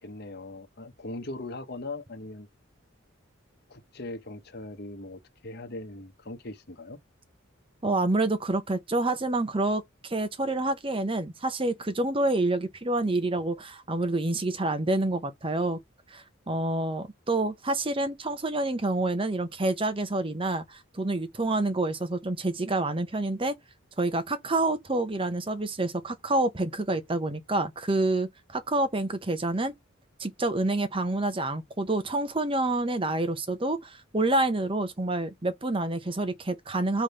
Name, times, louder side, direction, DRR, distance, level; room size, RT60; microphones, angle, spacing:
voice 1, 0.0-2.5 3.7-7.0, left 2 dB, 50° left, 1.1 m, -40 dB
voice 2, 7.8-15.8 16.1-23.5 24.0-29.7 30.2-37.0, right 2 dB, 25° right, 0.9 m, -28 dB
5.0 x 3.5 x 5.6 m
head